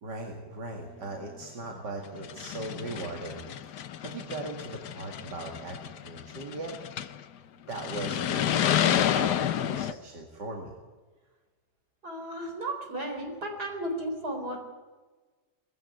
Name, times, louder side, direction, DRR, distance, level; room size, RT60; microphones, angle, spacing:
voice 1, 0.0-5.8 6.0-6.7 7.7-10.7, right 2 dB, 90° right, 1 dB, 2.8 m, -39 dB
sound 1, 1.4-1.5 2.1-7.2 7.7-9.9, left 10 dB, 80° left, 1.4 m, -30 dB
voice 2, 12.0-14.6, right 1 dB, 65° right, 4 dB, 4.7 m, -34 dB
21.0 x 15.0 x 9.4 m, 1.3 s
omnidirectional pair, 1.8 m